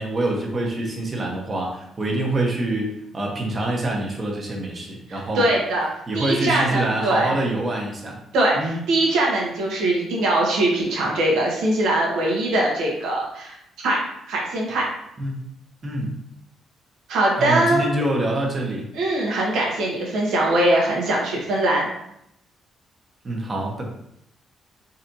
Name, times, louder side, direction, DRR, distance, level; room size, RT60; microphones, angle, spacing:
voice 1, 0.0-5.5 6.1-8.2 8.5-8.8 15.2-15.4 15.8-16.1 17.4-18.9 23.2-23.9, right 1 dB, 35° right, -1 dB, 1.0 m, -25 dB
voice 2, 5.1-5.9 6.1-7.3 8.3-13.6 13.8-14.0 14.3-14.9 17.1-17.9 18.9-21.9, right 1 dB, 85° right, -2 dB, 1.1 m, -21 dB
4.0 x 2.8 x 2.7 m, 0.76 s
cardioid pair, 90°, 0 cm